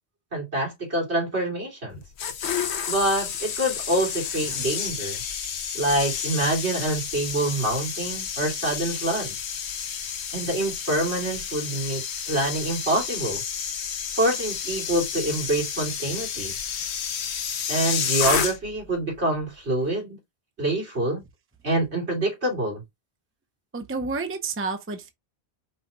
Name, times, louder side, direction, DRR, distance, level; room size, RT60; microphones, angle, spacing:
voice 1, 0.3-2.0 2.9-5.2 5.7-9.4 10.3-13.4 14.1-16.5 17.7-20.2 20.6-21.2 21.6-22.8, right 1 dB, 85° right, 3.1 m, -26 dB
sound 1, 1.9-18.9 19.1-19.4, left 7 dB, 80° left, 1.0 m, -30 dB
voice 2, 23.7-25.1, right 4 dB, 15° right, 0.6 m, -30 dB
5.5 x 2.3 x 4.1 m
omnidirectional pair, 1.1 m